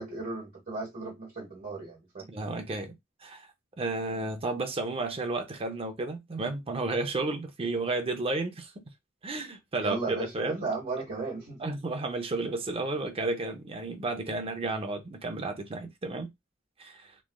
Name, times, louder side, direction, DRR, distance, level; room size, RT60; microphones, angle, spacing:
voice 1, 0.0-2.5 9.8-11.7, right 3 dB, 45° right, 1.1 m, -35 dB
voice 2, 2.3-2.9 3.2-3.5 3.8-8.7 9.2-10.7 11.6-16.3 16.8-17.1, right 2 dB, 30° right, 0.5 m, -32 dB
3.1 x 2.4 x 2.2 m
head